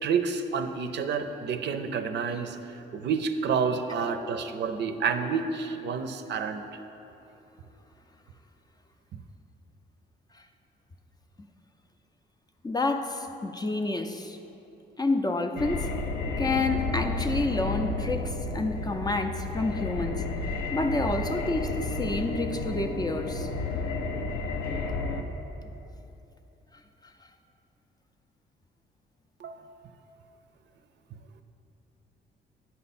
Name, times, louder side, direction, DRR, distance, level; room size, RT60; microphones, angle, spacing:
voice 1, 0.0-2.6 2.9-6.6 29.4-29.6, right 5 dB, 60° right, 8 dB, 0.5 m, -29 dB
voice 2, 12.6-14.4 15.0-15.9 16.4-20.2 20.7-23.5, left 2 dB, 20° left, 6 dB, 0.5 m, -29 dB
sound 1, 15.6-25.2, left 3 dB, 80° left, 0.6 m, -31 dB
9.5 x 5.5 x 4.2 m, 2.9 s
cardioid pair, 90°, 20 cm